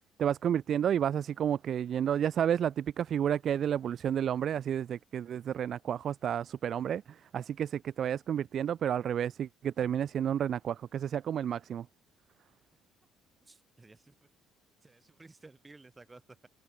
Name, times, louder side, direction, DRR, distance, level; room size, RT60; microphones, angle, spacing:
voice 1, 0.2-11.9, right 9 dB, 50° right, 0.4 m, -31 dB
voice 2, 13.4-14.3 14.8-16.5, right 3 dB, 15° right, 7.3 m, -55 dB
cardioid pair, 100°, 0 cm